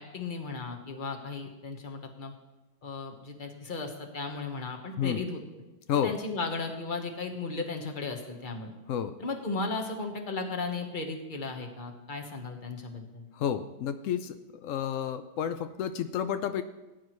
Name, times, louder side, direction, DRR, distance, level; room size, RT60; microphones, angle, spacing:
voice 1, 0.0-2.3 2.8-5.6 5.9-8.7 9.2-13.3, left 3 dB, 30° left, 3 dB, 1.2 m, -36 dB
voice 2, 13.3-14.4 14.6-16.6, left 9 dB, 90° left, 9 dB, 0.6 m, -30 dB
18.0 x 9.7 x 3.1 m, 1.1 s
omnidirectional pair, 2.0 m